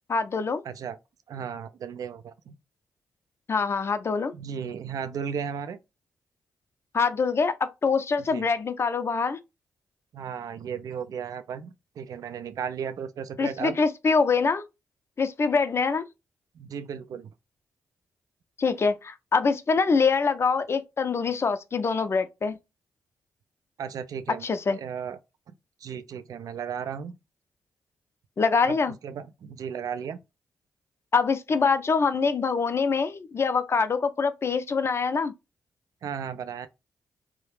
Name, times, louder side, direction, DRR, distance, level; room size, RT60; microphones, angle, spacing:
voice 1, 0.1-0.6 3.5-4.3 6.9-9.4 13.4-14.6 15.2-16.1 18.6-22.6 24.4-24.8 28.4-28.9 31.1-35.3, left 5 dB, 40° left, 0.4 m, -24 dB
voice 2, 0.6-1.0 1.3-2.5 4.3-5.8 8.3-8.4 10.1-13.8 16.6-17.3 23.8-24.5 24.8-25.2 25.8-27.2 28.7-30.2 36.0-36.7, right 7 dB, 65° right, 0.3 m, -35 dB
2.3 x 2.0 x 3.1 m
supercardioid pair, 45°, 6 cm